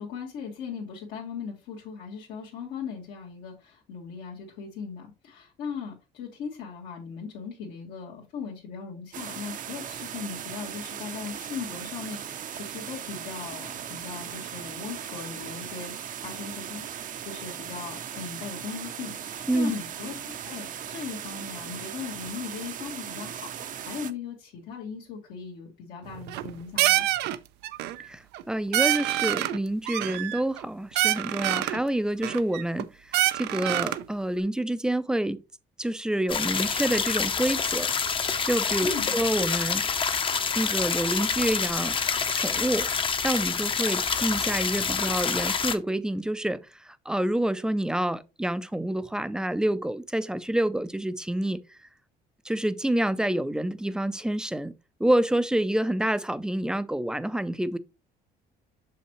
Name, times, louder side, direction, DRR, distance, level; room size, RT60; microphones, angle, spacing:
voice 1, 0.0-16.0 16.2-27.1 38.8-39.2, left 6 dB, 80° left, 1.8 m, -38 dB
sound 1, 9.1-24.1, right 9 dB, 50° right, 0.7 m, -38 dB
sound 2, 26.1-26.5 26.8-27.4 27.6-28.0 28.3-28.4 28.7-29.6 29.9-30.6 31.0-31.8 32.2-32.8 33.1-34.0, right 15 dB, 85° right, 0.5 m, -26 dB
voice 2, 28.1-35.4 35.8-37.9 38.4-39.9 40.6-41.9 42.3-42.9 43.2-51.8 52.4-54.7 55.0-57.8, right 1 dB, 5° right, 0.4 m, -28 dB
sound 3, 36.3-45.8, left 6 dB, 30° left, 0.7 m, -27 dB
6.4 x 5.6 x 3.0 m
cardioid pair, 110°, 17 cm